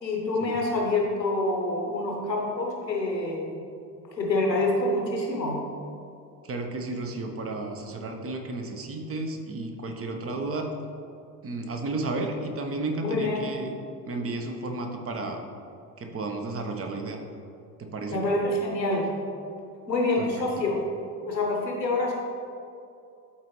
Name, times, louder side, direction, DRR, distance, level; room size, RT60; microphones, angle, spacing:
voice 1, 0.0-3.6 4.1-5.6 13.0-13.5 18.1-19.1 19.9-20.7 21.3-22.1, left 2 dB, 90° left, -1 dB, 1.2 m, -26 dB
voice 2, 6.4-10.7 11.4-13.7 14.1-15.4 16.0-17.2 17.8-18.3 20.2-20.5, right 2 dB, 25° right, 4 dB, 1.0 m, -33 dB
12.5 x 4.3 x 3.2 m, 2.5 s
figure-of-eight pair, 60°, 49 cm